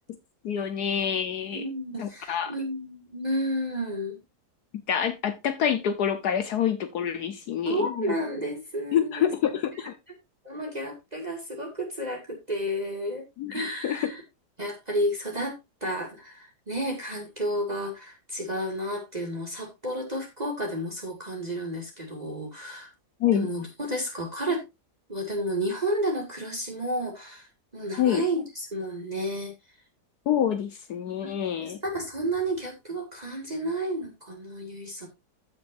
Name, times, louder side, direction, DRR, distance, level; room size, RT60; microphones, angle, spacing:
voice 1, 0.4-1.7 2.0-2.5 4.9-8.0 8.9-9.9 13.4-14.1 23.2-23.5 28.0-28.2 30.3-31.8, left 9 dB, 70° left, 1.4 m, -27 dB
voice 2, 1.5-4.2 7.6-9.3 10.4-13.2 13.5-14.2 14.6-15.6 15.8-22.9 23.3-24.6 25.1-27.5 27.7-29.5 31.2-31.3 31.6-35.1, right 1 dB, 25° right, 2.3 m, -31 dB
14.5 x 6.4 x 2.6 m
omnidirectional pair, 1.8 m